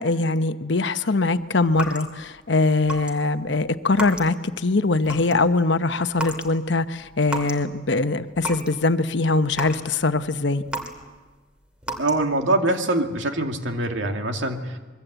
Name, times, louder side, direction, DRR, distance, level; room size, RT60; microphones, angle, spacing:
voice 1, 0.0-10.6, left 3 dB, 65° left, 10 dB, 1.0 m, -22 dB
sound 1, 1.7-2.4 2.8-3.1 3.4-4.5 4.9-5.5 6.1-6.5 6.8-7.7 8.0-8.8 9.1-11.3 11.8-12.4, right 1 dB, 5° right, 2.5 m, -33 dB
voice 2, 12.0-14.8, right 2 dB, 80° right, 4 dB, 2.5 m, -24 dB
25.0 x 23.0 x 8.1 m, 1.3 s
head